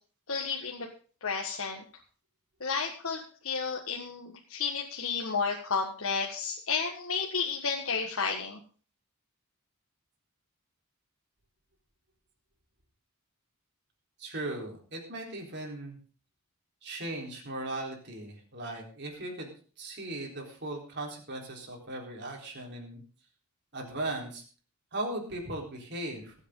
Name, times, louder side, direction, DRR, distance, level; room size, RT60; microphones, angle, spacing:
voice 1, 0.3-0.9 1.2-1.8 2.6-8.6, left 5 dB, 65° left, 0 dB, 1.6 m, -32 dB
voice 2, 14.2-16.0 16.8-19.5 19.8-23.0 23.7-24.4 24.9-26.3, right 2 dB, 50° right, 0 dB, 4.1 m, -38 dB
23.0 x 8.2 x 3.9 m, 0.40 s
head